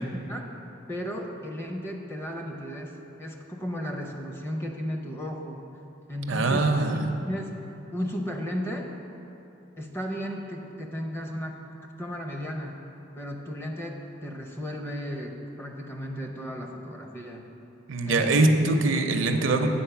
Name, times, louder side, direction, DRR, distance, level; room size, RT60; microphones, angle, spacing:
voice 1, 0.1-0.5 0.9-5.6 6.1-7.5 7.9-8.9 9.8-11.6 12.0-12.8 13.2-17.5 18.1-18.6, equal, 10° left, 2 dB, 0.5 m, -34 dB
voice 2, 6.3-7.1 17.9-19.7, right 2 dB, 65° right, 5 dB, 0.5 m, -23 dB
7.7 x 4.3 x 5.7 m, 2.8 s
head